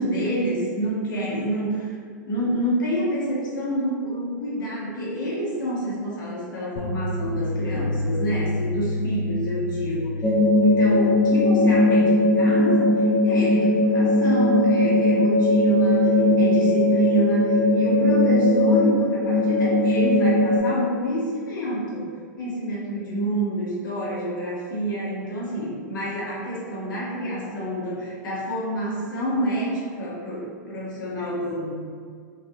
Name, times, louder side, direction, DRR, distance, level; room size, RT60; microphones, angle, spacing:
voice 1, 0.0-2.0 2.3-10.3 10.6-22.1 22.4-31.8, right 1 dB, 90° left, -7 dB, 1.4 m, -28 dB
sound 1, 6.8-11.7, left 1 dB, 75° left, 0.8 m, -29 dB
sound 2, 10.2-20.6, left 1 dB, 10° left, 0.6 m, -19 dB
5.6 x 2.8 x 2.5 m, 2.1 s
hypercardioid pair, 140°, 10 cm